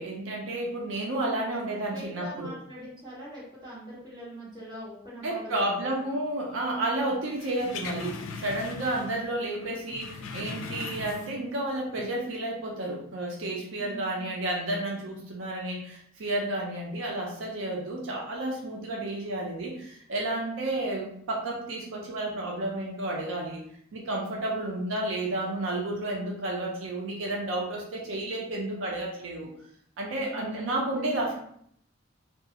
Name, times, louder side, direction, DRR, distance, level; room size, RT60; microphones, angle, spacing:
voice 1, 0.0-2.5 5.2-23.6 23.9-29.5 30.0-31.4, right 1 dB, 85° right, -2 dB, 0.5 m, -31 dB
voice 2, 1.7-6.0 13.7-14.3 24.5-24.8 30.3-30.5, equal, 25° right, -9 dB, 1.3 m, -43 dB
sound 1, 7.3-9.3 9.5-11.5 11.9-12.0, left 4 dB, 85° left, 0.4 m, -40 dB
2.3 x 2.3 x 2.8 m, 0.67 s
head